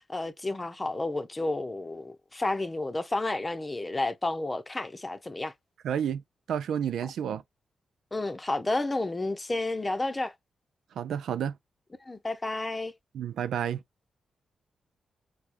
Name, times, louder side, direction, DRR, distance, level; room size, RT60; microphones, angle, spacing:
voice 1, 0.1-5.5 8.1-10.3 12.1-12.9, left 2 dB, 25° left, 0.7 m, -31 dB
voice 2, 5.8-6.2 6.5-7.4 11.0-11.5 13.1-13.8, right 9 dB, 90° right, 0.4 m, -30 dB
4.7 x 2.3 x 2.5 m
cardioid pair, 85°, 0 cm